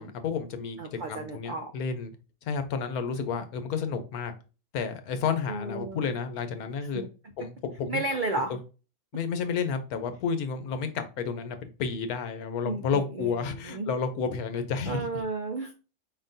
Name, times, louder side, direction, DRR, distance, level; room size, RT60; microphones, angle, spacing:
voice 1, 0.0-2.1 2.4-4.3 4.7-7.0 7.4-8.0 8.5-8.6 9.1-15.2, left 6 dB, 90° left, 9 dB, 1.2 m, -31 dB
voice 2, 0.8-1.7 5.5-6.1 6.9-7.1 7.9-8.6 12.6-13.9 14.9-15.7, right 2 dB, 75° right, 5 dB, 0.4 m, -33 dB
5.0 x 3.7 x 2.6 m, 0.33 s
omnidirectional pair, 1.5 m